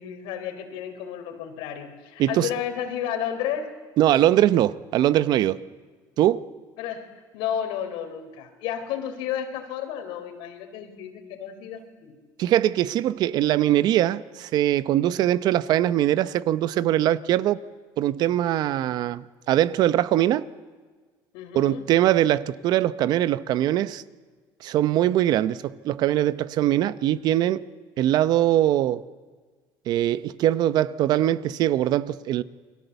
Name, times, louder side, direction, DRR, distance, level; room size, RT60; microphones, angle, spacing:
voice 1, 0.0-3.7 6.8-7.1 7.3-12.5 21.3-21.8, left 9 dB, 85° left, 3.8 m, -32 dB
voice 2, 2.2-2.5 4.0-5.6 6.2-6.4 12.4-17.6 18.0-20.5 21.5-24.0 24.6-27.6 28.0-29.0 29.9-32.4, right 13 dB, 55° right, 0.8 m, -22 dB
29.0 x 22.0 x 8.1 m
cardioid pair, 155°, 8 cm